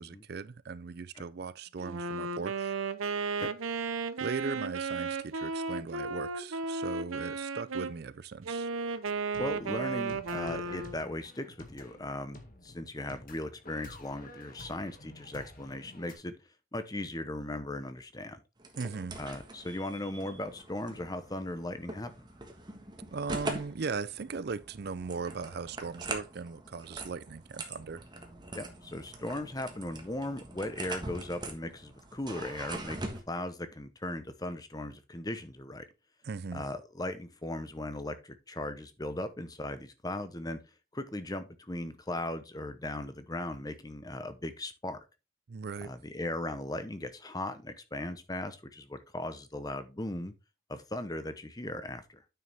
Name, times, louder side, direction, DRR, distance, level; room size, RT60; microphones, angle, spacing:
voice 1, 0.0-2.7 4.2-8.7 18.8-19.2 23.1-28.0 36.2-36.6 45.5-45.9, right 5 dB, 50° right, 0.4 m, -38 dB
Wind instrument woodwind instrument, 1.8-7.9 8.4-11.1, right 4 dB, 85° right, 0.8 m, -34 dB
sound 1, 9.0-16.1, left 1 dB, 40° left, 2.0 m, -51 dB
voice 2, 9.4-16.3 16.7-18.4 19.2-22.3 28.5-35.8 36.5-40.6 40.9-45.0 45.8-50.3 50.7-52.2, left 1 dB, 20° left, 0.8 m, -38 dB
sound 2, 18.6-33.2, right 2 dB, 20° right, 1.4 m, -43 dB
9.2 x 6.7 x 3.5 m
head